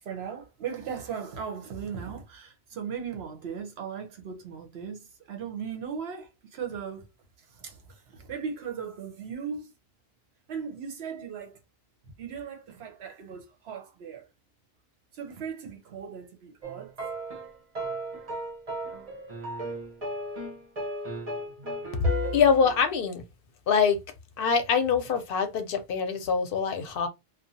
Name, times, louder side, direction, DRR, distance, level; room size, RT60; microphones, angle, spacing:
voice 1, 0.0-7.1 7.5-9.7 10.5-11.6 12.2-14.3 15.1-17.0 19.3-19.4, right 7 dB, 80° right, 1.0 m, -38 dB
sound 1, 16.6-22.8, right 1 dB, 40° right, 0.9 m, -35 dB
voice 2, 22.3-23.2 23.7-24.0 24.4-27.1, left 6 dB, 65° left, 0.7 m, -24 dB
2.6 x 2.2 x 2.6 m
omnidirectional pair, 1.0 m